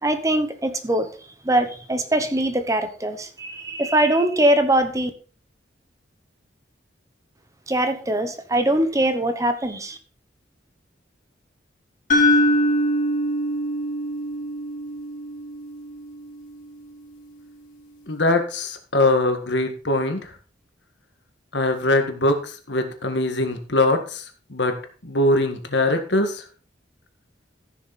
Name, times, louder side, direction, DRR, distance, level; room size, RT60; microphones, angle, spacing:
voice 1, 0.0-1.1 1.4-5.1 7.7-10.0, right 1 dB, 20° right, 8 dB, 1.0 m, -22 dB
sound 1, 12.1-16.2, equal, 45° left, 3.0 m, -23 dB
voice 2, 18.1-20.2 21.5-24.2 24.5-24.7 25.0-26.4, left 2 dB, 75° left, 6 dB, 1.8 m, -22 dB
14.5 x 6.6 x 4.3 m, 0.39 s
head